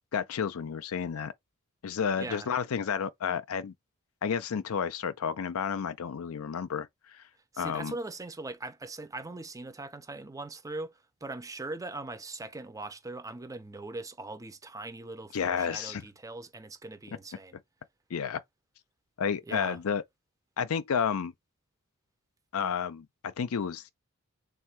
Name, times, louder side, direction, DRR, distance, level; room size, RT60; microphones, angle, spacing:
voice 1, 0.1-1.3 1.8-3.7 4.2-7.2 7.6-7.9 15.3-16.0 18.1-18.4 19.2-20.0 20.6-21.3 22.5-23.9, left 7 dB, 70° left, 0.5 m, -31 dB
voice 2, 2.2-2.5 7.5-17.6 19.5-19.8, right 2 dB, 15° right, 0.5 m, -40 dB
3.6 x 2.4 x 4.4 m
head